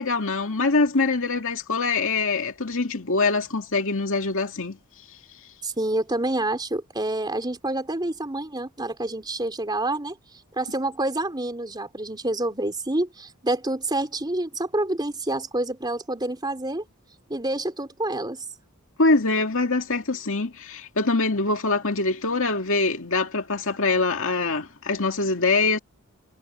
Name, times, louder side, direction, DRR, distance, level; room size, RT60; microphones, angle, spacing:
voice 1, 0.0-4.8 19.0-25.8, left 3 dB, 60° left, 2.4 m, -24 dB
voice 2, 5.6-10.2 10.5-16.8 17.3-18.4, right 2 dB, 20° right, 3.6 m, -27 dB
head